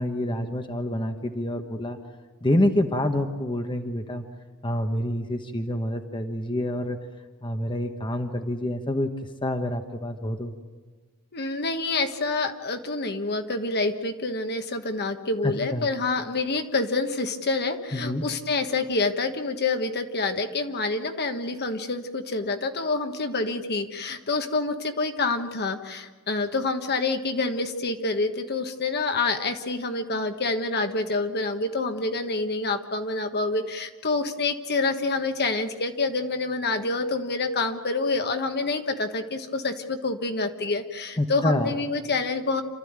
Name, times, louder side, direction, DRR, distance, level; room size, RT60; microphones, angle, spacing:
voice 1, 0.0-2.0 2.4-4.2 4.6-7.0 7.4-9.1 9.4-10.5 15.4-15.9 17.9-18.2 41.2-41.7, left 1 dB, 20° left, 5 dB, 1.1 m, -27 dB
voice 2, 11.3-42.6, left 3 dB, 50° left, 6 dB, 1.4 m, -27 dB
28.0 x 13.5 x 8.8 m, 1.4 s
head